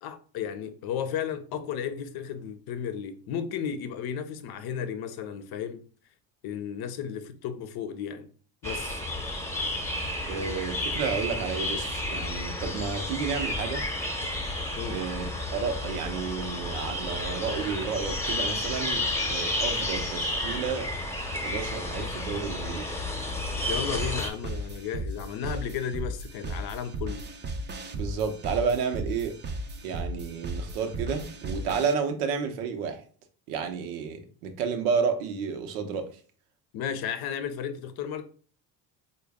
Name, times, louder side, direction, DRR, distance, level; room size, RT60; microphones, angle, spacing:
voice 1, 0.0-5.8 6.4-8.3 8.6-9.0 14.8-15.0 23.7-27.3 36.7-38.2, left 8 dB, 60° left, 0.6 m, -34 dB
sound 1, 8.6-24.3, left 1 dB, 5° left, 0.8 m, -31 dB
voice 2, 10.2-13.8 14.9-19.0 19.3-20.9 21.3-22.9 27.9-29.3 29.8-33.0 33.5-36.1, right 6 dB, 90° right, 0.7 m, -31 dB
sound 2, 23.9-31.9, right 1 dB, 25° right, 0.5 m, -36 dB
3.8 x 2.2 x 3.4 m
supercardioid pair, 75°, 42 cm